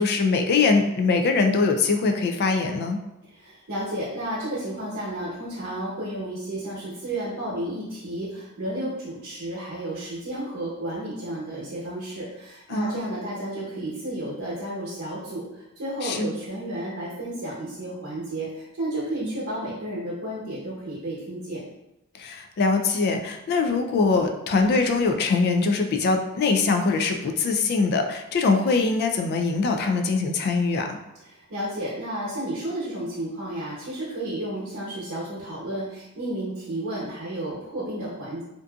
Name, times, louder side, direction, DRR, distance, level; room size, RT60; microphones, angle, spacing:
voice 1, 0.0-3.0 12.7-13.2 16.0-16.3 19.2-19.4 22.2-31.0, left 4 dB, 50° left, 5 dB, 0.3 m, -23 dB
voice 2, 3.3-21.6 31.3-38.4, right 1 dB, 75° right, -8 dB, 0.9 m, -32 dB
2.5 x 2.5 x 2.3 m, 0.89 s
head